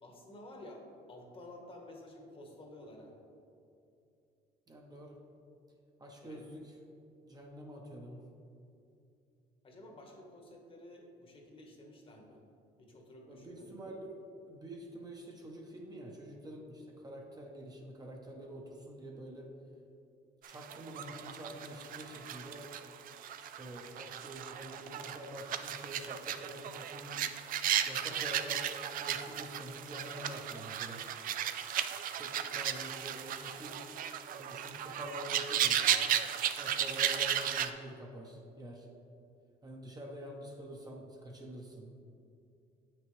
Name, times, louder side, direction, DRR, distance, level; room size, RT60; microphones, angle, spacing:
voice 1, 0.0-3.1 6.2-6.5 9.6-12.4 12.8-13.8, left 1 dB, 30° left, 1 dB, 1.2 m, -52 dB
voice 2, 4.7-5.2 6.0-6.8 7.2-8.2 13.3-14.1 14.5-19.5 20.4-22.7 23.4-27.3 27.8-28.6 29.0-31.0 32.2-33.8 34.3-36.0 36.6-38.9 39.6-41.9, equal, 20° right, 0 dB, 0.9 m, -47 dB
sound 1, 20.4-37.7, right 10 dB, 55° right, 0.4 m, -35 dB
8.0 x 6.0 x 3.2 m, 2.6 s
cardioid pair, 110°, 17 cm